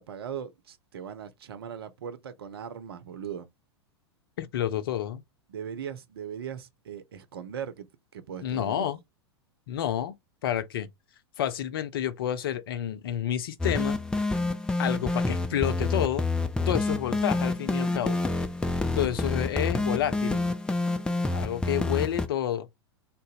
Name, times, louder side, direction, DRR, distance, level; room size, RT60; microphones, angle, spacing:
voice 1, 0.0-3.5 5.5-8.9, right 8 dB, 60° right, 0.7 m, -39 dB
voice 2, 4.4-5.2 8.4-9.0 9.7-10.2 10.4-10.9 11.4-14.0 14.8-16.3 16.7-18.2 19.0-20.4 21.3-22.9, left 11 dB, 55° left, 0.6 m, -29 dB
sound 1, 13.6-22.3, left 3 dB, 5° left, 0.4 m, -28 dB
3.8 x 2.0 x 3.9 m
figure-of-eight pair, 95°, 14 cm